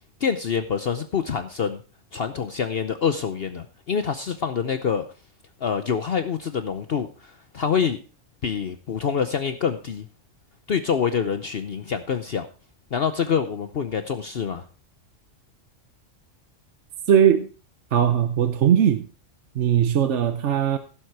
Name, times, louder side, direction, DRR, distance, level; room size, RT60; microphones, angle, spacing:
voice 1, 0.2-1.8 2.1-5.0 5.6-8.0 8.4-10.1 10.7-12.5 12.9-14.7, left 7 dB, 55° left, 9 dB, 0.9 m, -26 dB
voice 2, 17.1-17.5 17.9-19.0 19.6-20.8, right 9 dB, 65° right, 9 dB, 1.1 m, -19 dB
15.5 x 7.6 x 4.7 m, 0.37 s
omnidirectional pair, 1.3 m